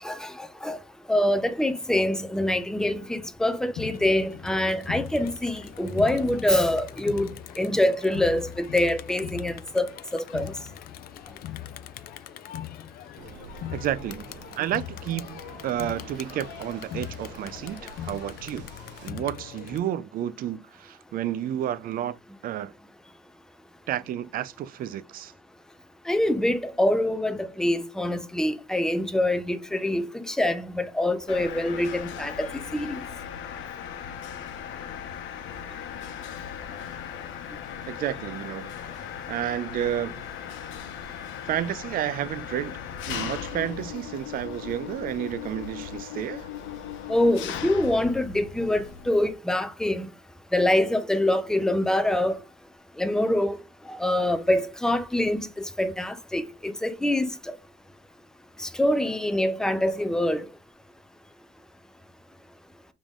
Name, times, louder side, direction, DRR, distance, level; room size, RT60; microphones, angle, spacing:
voice 1, 0.0-0.8 1.1-10.5 26.1-33.0 47.1-50.1 50.5-52.4 53.0-53.6 53.9-57.6 58.6-60.5, left 1 dB, 5° left, 0.5 m, -25 dB
Crowd, 3.8-19.8, left 11 dB, 50° left, 0.4 m, -40 dB
Waves surf, 13.2-19.1, right 5 dB, 65° right, 1.0 m, -47 dB
voice 2, 13.7-14.3 14.6-18.7 19.0-22.2 22.4-22.7 23.9-25.3 37.9-38.7 39.3-40.2 41.4-42.8 43.1-46.5, right 11 dB, 45° right, 0.5 m, -31 dB
Mechanisms, 31.3-49.3, left 9 dB, 75° left, 0.9 m, -38 dB
7.0 x 3.7 x 3.7 m
cardioid pair, 160°, 20 cm